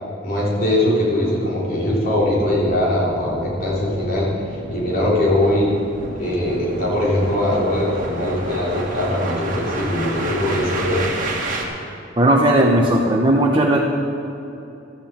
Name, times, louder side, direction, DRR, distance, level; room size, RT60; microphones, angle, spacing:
voice 1, 0.2-4.3 4.7-5.8 6.1-11.2, left 1 dB, 50° left, -5 dB, 3.7 m, -21 dB
sound 1, 2.1-11.7, right 2 dB, 45° right, 1.9 m, -31 dB
voice 2, 12.2-13.8, right 1 dB, 25° right, -1 dB, 0.9 m, -16 dB
14.5 x 12.5 x 4.5 m, 2.8 s
head